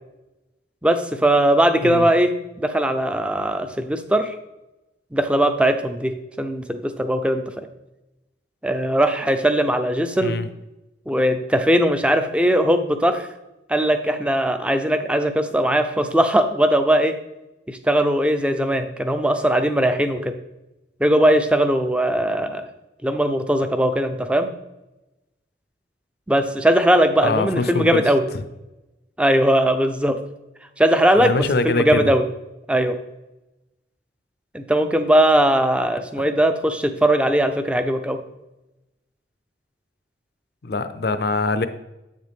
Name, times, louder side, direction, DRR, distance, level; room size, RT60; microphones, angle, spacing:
voice 1, 0.8-4.4 5.1-7.7 8.6-10.4 11.1-13.3 13.7-17.2 17.7-20.3 21.0-22.6 23.0-24.5 26.3-28.3 29.2-30.2 30.8-31.3 31.6-32.2 32.7-33.0 34.5-38.2, right 1 dB, 5° right, 8 dB, 0.4 m, -19 dB
voice 2, 27.2-28.0 31.1-32.1 36.2-36.3 40.6-41.7, left 3 dB, 55° left, 11 dB, 0.5 m, -23 dB
8.0 x 6.5 x 3.5 m, 0.98 s
head